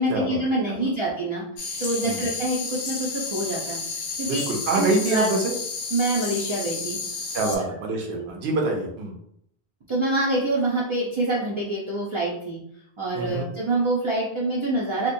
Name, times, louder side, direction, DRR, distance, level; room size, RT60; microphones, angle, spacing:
voice 1, 0.0-1.4 1.8-3.8 4.2-4.4 4.7-5.3 5.9-7.0 7.4-7.6 8.1-8.3 9.9-12.6 13.0-15.1, right 1 dB, 45° right, -5 dB, 0.4 m, -26 dB
sound 1, 1.6-7.6, left 4 dB, 65° left, 0.7 m, -32 dB
voice 2, 4.2-5.4 7.3-9.1 13.1-13.5, right 3 dB, 80° right, 0 dB, 0.9 m, -25 dB
2.8 x 2.1 x 2.6 m, 0.73 s
omnidirectional pair, 1.1 m